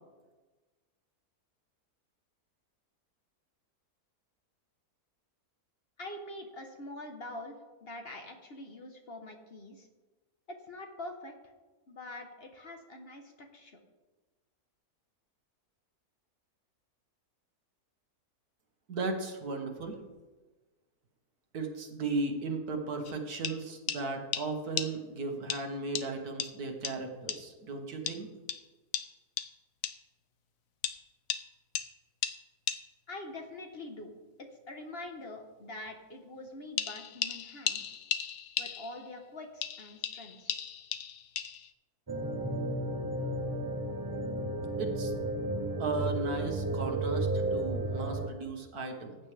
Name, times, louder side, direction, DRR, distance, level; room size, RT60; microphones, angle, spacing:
voice 1, 6.0-7.6 7.8-9.9 10.5-11.3 11.9-13.8 33.1-34.1 34.7-37.9 38.6-40.6, left 2 dB, 45° left, 4 dB, 1.3 m, -44 dB
voice 2, 18.9-20.0 21.5-28.3 44.8-45.1 45.8-49.2, right 3 dB, 75° right, 3 dB, 1.9 m, -36 dB
sound 1, 23.1-23.2 23.4-23.6 23.9-24.0 24.3-24.5 24.8-24.9 25.5-25.6 26.0-26.1 26.4-26.5 26.9-27.0 27.3-27.4 28.1-28.2 28.5-28.6 28.9-29.1 29.4-29.5 29.8-30.0 30.8-31.0 31.3-31.4 31.8-31.9 32.2-32.4 32.7-32.8 36.8-39.1 39.6-41.7, left 9 dB, 65° left, 1.1 m, -35 dB
sound 2, 42.1-48.3, right 2 dB, 25° right, 0.5 m, -33 dB
15.0 x 9.0 x 3.4 m, 1.2 s
omnidirectional pair, 1.6 m